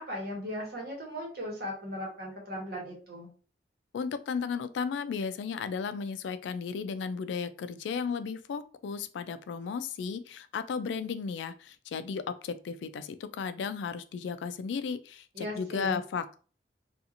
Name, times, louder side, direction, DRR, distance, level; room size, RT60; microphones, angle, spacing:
voice 1, 0.0-3.3 15.3-16.0, equal, 60° right, -2 dB, 1.1 m, -37 dB
voice 2, 3.9-16.4, left 5 dB, 80° left, 11 dB, 0.3 m, -34 dB
2.8 x 2.4 x 2.5 m, 0.38 s
head